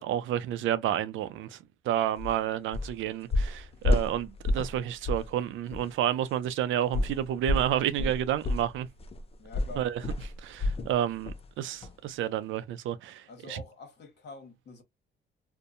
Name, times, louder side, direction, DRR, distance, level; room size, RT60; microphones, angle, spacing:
voice 1, 0.0-1.6 1.8-8.9 9.8-10.0 10.4-13.6, right 11 dB, 75° right, 0.5 m, -30 dB
sound 1, 2.2-2.4 2.7-3.0 3.3-4.8 5.0-5.3 5.7-5.8 6.9-10.9 11.2-11.5 11.8-11.9, left 2 dB, 30° left, 0.5 m, -29 dB
voice 2, 9.4-9.9 13.3-14.8, left 3 dB, 60° left, 1.1 m, -46 dB
2.7 x 2.1 x 2.4 m
cardioid pair, 90°, 20 cm